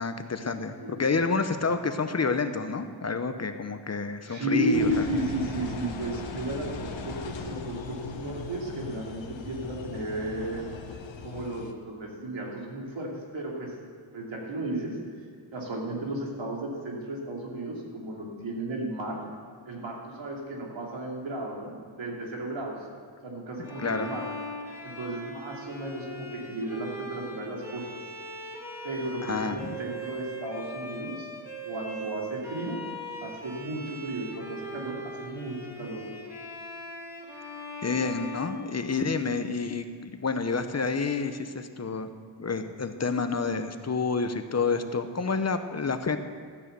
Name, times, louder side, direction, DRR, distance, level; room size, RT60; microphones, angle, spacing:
voice 1, 0.0-5.0 23.6-24.1 29.2-29.7 37.8-42.1 42.4-46.2, left 4 dB, 35° left, 8 dB, 0.9 m, -29 dB
voice 2, 0.8-1.4 4.2-10.7 11.2-13.7 14.1-15.0 15.5-19.2 19.7-22.8 23.2-24.3 24.8-28.0 28.8-31.3 31.6-32.8 33.2-36.0, right 1 dB, 80° right, -2 dB, 3.0 m, -34 dB
Engine, 4.7-11.7, left 5 dB, 75° left, 1.2 m, -39 dB
Bowed string instrument, 23.6-39.4, equal, 5° right, 1.9 m, -40 dB
14.0 x 9.7 x 6.8 m, 2.1 s
wide cardioid pair, 115°, 46 cm